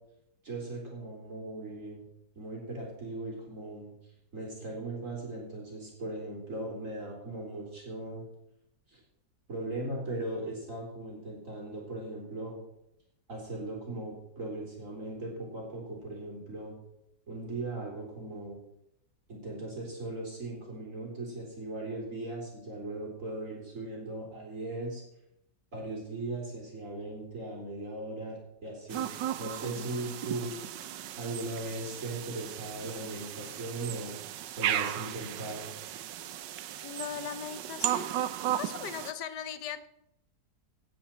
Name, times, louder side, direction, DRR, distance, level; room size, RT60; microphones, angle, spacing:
voice 1, 0.4-2.0 2.4-3.9 4.3-8.2 8.9-9.0 9.5-12.6 13.3-16.7 17.3-18.6 19.3-25.0 25.7-29.1 29.4-30.6 31.2-34.2 34.6-35.7, right 2 dB, 45° right, -2 dB, 4.0 m, -38 dB
sound 1, 28.9-39.1, right 11 dB, 85° right, 1.4 m, -36 dB
voice 2, 36.8-38.1 38.5-39.9, left 8 dB, 75° left, 12 dB, 1.5 m, -39 dB
17.0 x 9.4 x 4.4 m, 0.81 s
omnidirectional pair, 1.8 m